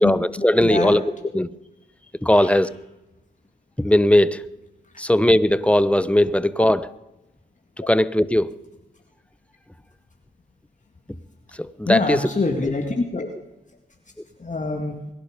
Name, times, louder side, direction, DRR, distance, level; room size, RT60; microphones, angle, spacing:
voice 1, 0.0-1.5 2.2-2.7 3.8-4.5 5.0-6.8 7.8-8.6 11.6-12.3 12.6-12.7, left 1 dB, 5° left, 16 dB, 0.9 m, -19 dB
voice 2, 0.6-1.0 2.3-2.6 6.6-6.8 11.9-13.3 14.4-15.0, left 3 dB, 35° left, 3 dB, 2.1 m, -25 dB
23.0 x 11.0 x 5.2 m, 0.90 s
supercardioid pair, 45°, 21 cm